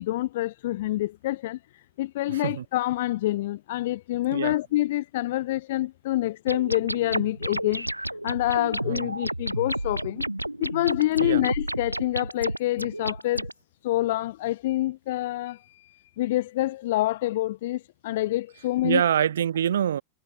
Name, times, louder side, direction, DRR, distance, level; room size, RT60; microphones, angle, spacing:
voice 1, 0.0-7.9 8.2-10.3 10.6-13.5 13.8-19.0, left 16 dB, 55° left, 0.5 m, -27 dB
voice 2, 2.3-2.6 4.3-4.6 8.8-9.1 11.2-11.4 18.8-20.0, right 9 dB, 65° right, 2.3 m, -25 dB
sound 1, 6.5-13.5, right 1 dB, 85° right, 3.5 m, -31 dB
figure-of-eight pair, 90°, 0 cm